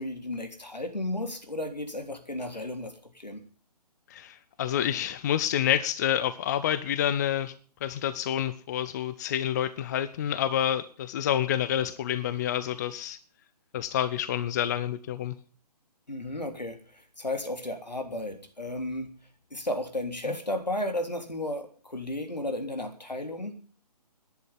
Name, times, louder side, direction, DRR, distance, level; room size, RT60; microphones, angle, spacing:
voice 1, 0.0-3.4 16.1-19.1 19.5-23.6, left 1 dB, 80° left, 3.4 m, -34 dB
voice 2, 4.1-7.5 7.8-13.2 13.7-15.3 20.3-20.4, left 10 dB, 25° left, 0.6 m, -28 dB
12.0 x 10.5 x 10.0 m
figure-of-eight pair, 135°, 21 cm